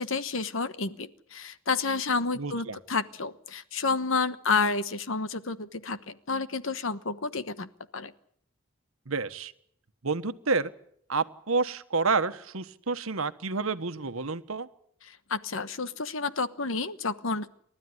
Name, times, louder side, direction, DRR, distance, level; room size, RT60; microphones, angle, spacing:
voice 1, 0.0-8.1 15.0-17.5, left 4 dB, 65° left, 13 dB, 1.2 m, -30 dB
voice 2, 2.4-2.8 9.1-9.5 10.0-10.7 11.1-14.7, right 4 dB, 75° right, 10 dB, 1.3 m, -29 dB
29.5 x 13.0 x 9.7 m, 0.68 s
head